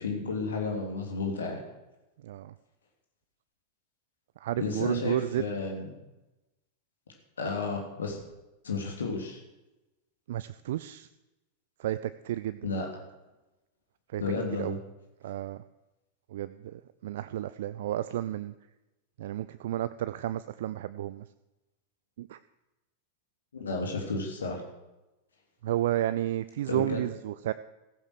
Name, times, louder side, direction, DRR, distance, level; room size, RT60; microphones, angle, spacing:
voice 1, 0.0-1.6 4.6-5.9 7.4-8.2 8.6-9.4 12.6-12.9 14.2-14.8 23.5-24.6 26.7-27.0, left 4 dB, 70° left, 2 dB, 2.9 m, -32 dB
voice 2, 2.2-2.5 4.4-5.4 10.3-11.1 11.8-12.7 14.1-14.2 14.6-14.8 15.2-15.6 16.3-18.5 19.2-21.2 22.2-22.4 25.6-27.5, right 13 dB, 55° right, 13 dB, 0.5 m, -32 dB
15.0 x 10.5 x 6.6 m, 1.0 s
figure-of-eight pair, 90°, 0 cm